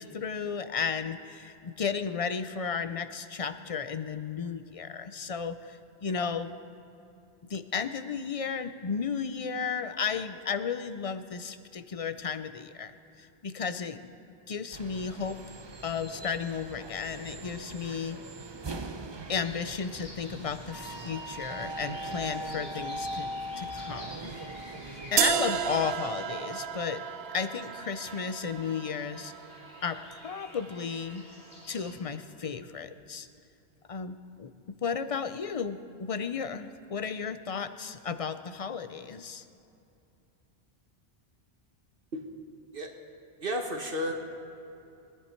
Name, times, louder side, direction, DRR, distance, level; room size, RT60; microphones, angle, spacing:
voice 1, 0.0-6.5 7.5-12.9 13.2-14.1 14.5-15.4 15.8-18.2 19.3-23.3 23.6-24.3 25.1-27.0 27.3-29.3 29.8-31.2 31.7-33.3 33.9-34.5 34.8-39.4, left 6 dB, 40° left, 11 dB, 0.6 m, -34 dB
sound 1, 14.7-26.0, right 1 dB, 30° right, 0.6 m, -40 dB
sound 2, 19.4-31.9, left 1 dB, 65° left, 3.0 m, -51 dB
sound 3, 25.2-31.1, right 9 dB, 75° right, 0.9 m, -33 dB
voice 2, 43.4-44.1, equal, 60° right, 3 dB, 1.4 m, -32 dB
23.5 x 10.5 x 4.5 m, 2.7 s
omnidirectional pair, 1.1 m